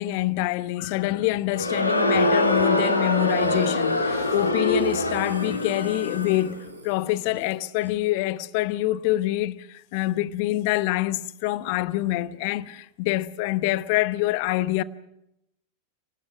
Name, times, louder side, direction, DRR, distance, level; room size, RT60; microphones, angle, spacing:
voice 1, 0.0-14.8, left 16 dB, 45° left, 1.0 m, -26 dB
Crowd, 1.5-6.5, left 1 dB, 80° left, 3.0 m, -24 dB
Burping eructation, 3.4-8.1, right 2 dB, 80° right, 4.8 m, -43 dB
30.0 x 19.0 x 6.0 m
figure-of-eight pair, 90°, 0 cm